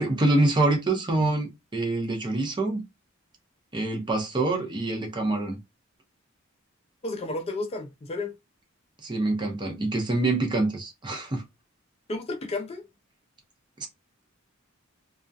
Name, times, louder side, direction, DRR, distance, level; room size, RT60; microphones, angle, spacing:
voice 1, 0.0-2.8 3.7-5.6 9.0-11.4 13.8-13.9, right 2 dB, 25° right, 0.6 m, -25 dB
voice 2, 7.0-8.3 12.1-12.8, left 2 dB, 30° left, 0.4 m, -32 dB
2.3 x 2.1 x 2.5 m
head